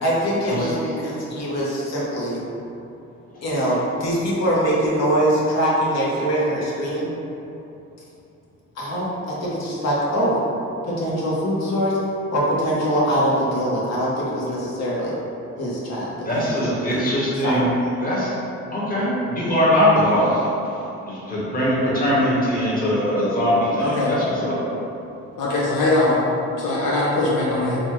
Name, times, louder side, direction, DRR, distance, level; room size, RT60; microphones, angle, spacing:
voice 1, 0.0-2.4 3.4-7.1 8.8-10.4 10.8-12.0 12.3-15.1 15.6-16.7 17.4-17.7, equal, 60° left, -6 dB, 1.3 m, -23 dB
voice 2, 16.2-17.7 18.0-18.3 18.7-20.5 21.0-24.6, equal, 30° left, -8 dB, 1.4 m, -21 dB
voice 3, 23.8-24.1 25.4-26.2 26.6-27.8, left 2 dB, 90° left, -6 dB, 0.8 m, -21 dB
4.1 x 2.4 x 4.6 m, 2.8 s
cardioid pair, 90°, 30 cm